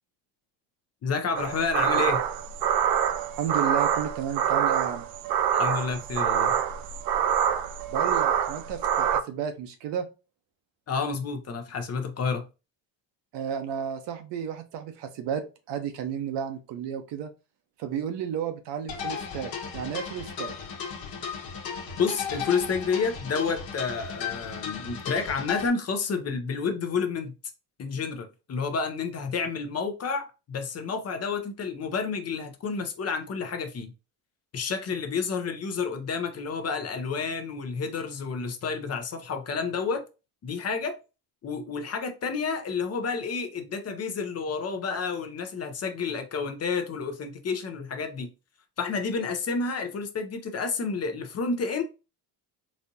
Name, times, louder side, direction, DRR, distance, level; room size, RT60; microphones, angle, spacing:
voice 1, 1.0-2.2 5.5-6.6 10.9-12.5 22.0-27.3 27.8-33.9 34.5-40.0 40.4-41.0 41.4-48.3 48.8-51.8, left 5 dB, 35° left, 0.6 m, -30 dB
sound 1, 1.3-9.2, right 8 dB, 55° right, 0.5 m, -26 dB
voice 2, 3.4-5.1 7.9-10.0 13.3-17.3 17.8-20.6, right 8 dB, 70° right, 0.9 m, -32 dB
sound 2, 18.9-25.7, left 6 dB, 55° left, 1.1 m, -35 dB
4.1 x 2.6 x 2.7 m
cardioid pair, 105°, 43 cm